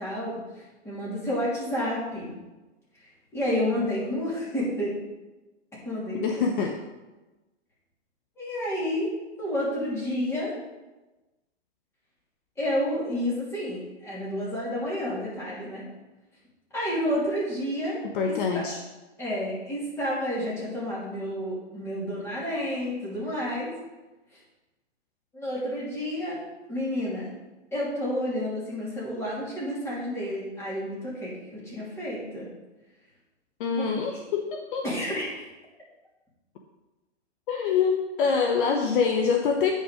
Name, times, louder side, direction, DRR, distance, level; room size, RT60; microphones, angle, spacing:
voice 1, 0.0-2.3 3.3-5.0 5.8-6.5 8.4-9.1 9.4-10.5 12.6-15.9 16.7-18.6 19.2-23.7 25.3-26.4 26.7-27.3 27.7-32.5 33.8-33.9 34.8-35.4, equal, 5° left, -7 dB, 3.0 m, -30 dB
voice 2, 3.5-4.0 6.1-6.8 18.0-18.8 33.6-34.9 37.5-39.7, left 6 dB, 45° left, 3 dB, 0.9 m, -25 dB
9.3 x 5.5 x 5.0 m, 1.1 s
hypercardioid pair, 145°, 35 cm